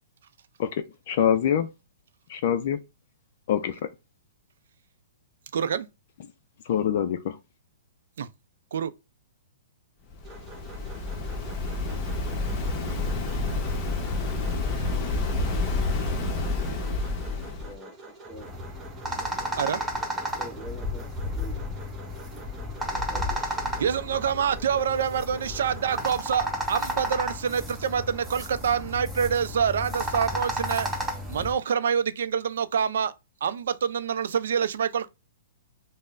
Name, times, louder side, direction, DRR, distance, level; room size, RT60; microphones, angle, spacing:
voice 1, 1.1-1.7 2.3-2.8 3.5-3.8 6.6-7.4, left 9 dB, 55° left, 0.4 m, -24 dB
voice 2, 5.5-5.9 8.2-8.3 8.7-8.9 19.6-19.8 23.8-30.9 31.3-33.1 33.4-35.1, right 7 dB, 70° right, 0.4 m, -26 dB
Waves surf, 10.1-17.7, left 3 dB, 30° left, 0.9 m, -29 dB
sound 1, 10.2-26.1, right 3 dB, 20° right, 1.1 m, -47 dB
voice 3, 17.6-18.6 20.4-22.0 22.5-22.6 22.9-23.4, left 1 dB, 15° left, 1.5 m, -45 dB
sound 2, 18.3-31.5, equal, 5° right, 0.8 m, -33 dB
5.3 x 2.0 x 2.5 m
hypercardioid pair, 135°, 0 cm